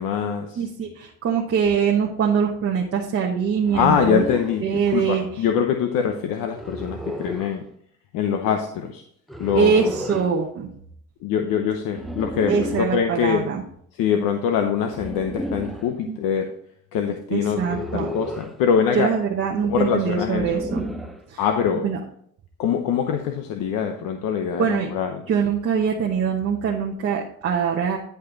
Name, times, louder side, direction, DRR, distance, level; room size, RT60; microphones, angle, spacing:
voice 1, 0.0-0.6 3.7-7.6 8.1-9.0 9.4-9.8 11.2-12.5 12.9-13.4 14.0-16.4 16.9-19.1 19.7-20.6 21.4-21.9 22.6-25.2, left 7 dB, 85° left, 5 dB, 0.9 m, -23 dB
voice 2, 0.6-4.2 4.6-5.4 9.5-10.7 12.5-13.6 16.1-16.2 17.3-18.1 18.9-20.8 21.3-21.4 21.8-22.0 24.6-24.9 25.3-28.0, right 6 dB, 45° right, -1 dB, 1.1 m, -23 dB
sound 1, 3.6-4.6 6.5-7.5 9.3-10.3 11.9-12.9 14.9-15.9 17.5-18.6 20.2-21.2, equal, ahead, 0.6 m, -32 dB
11.0 x 5.3 x 4.0 m, 0.67 s
cardioid pair, 140°, 33 cm